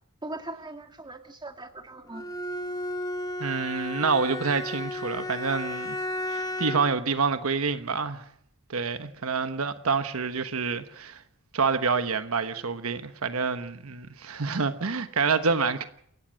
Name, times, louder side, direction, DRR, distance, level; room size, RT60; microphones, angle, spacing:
voice 1, 0.2-2.2, right 2 dB, 20° right, 1.9 m, -40 dB
Bowed string instrument, 2.1-7.0, left 1 dB, 15° left, 1.6 m, -33 dB
voice 2, 3.4-6.0 6.3-8.2 8.7-11.2 11.5-15.9, right 4 dB, 75° right, 1.1 m, -27 dB
28.5 x 15.5 x 6.4 m
head